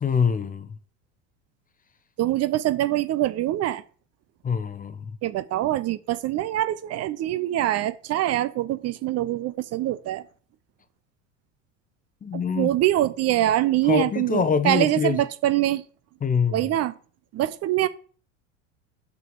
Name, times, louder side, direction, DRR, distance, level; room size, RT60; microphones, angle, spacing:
voice 1, 0.0-0.8 4.4-5.1 12.2-12.7 13.8-15.2 16.2-16.6, left 6 dB, 20° left, 0.9 m, -24 dB
voice 2, 2.2-3.8 5.2-10.2 12.3-15.8 16.5-16.9 17.3-17.9, right 14 dB, 40° right, 0.7 m, -24 dB
6.8 x 6.1 x 4.7 m
hypercardioid pair, 90°, 38 cm